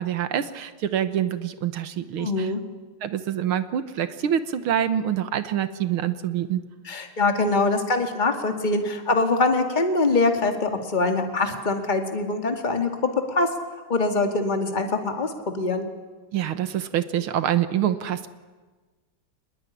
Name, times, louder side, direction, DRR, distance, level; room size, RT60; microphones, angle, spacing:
voice 1, 0.0-2.5 3.0-6.6 16.3-18.3, right 10 dB, 80° right, 12 dB, 2.0 m, -26 dB
voice 2, 2.2-2.6 6.9-13.5 13.9-15.9, left 3 dB, 20° left, 5 dB, 2.2 m, -23 dB
24.5 x 21.0 x 10.0 m, 1.3 s
omnidirectional pair, 2.3 m